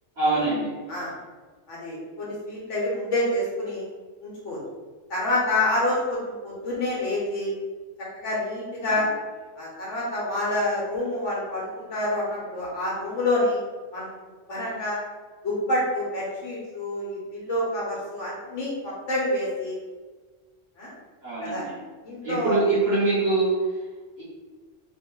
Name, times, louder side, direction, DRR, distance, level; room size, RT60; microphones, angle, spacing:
voice 1, 0.2-0.7 8.9-9.0 21.2-21.7 22.2-23.5 24.2-24.3, right 2 dB, 55° right, -8 dB, 1.6 m, -24 dB
voice 2, 1.7-3.8 4.2-4.6 5.1-7.5 8.1-9.1 9.6-13.6 13.9-14.1 14.5-15.0 15.4-19.8 20.8-20.9 21.4-21.6 22.0-22.6, left 1 dB, 70° left, -5 dB, 1.6 m, -27 dB
3.4 x 3.0 x 3.8 m, 1.3 s
omnidirectional pair, 1.3 m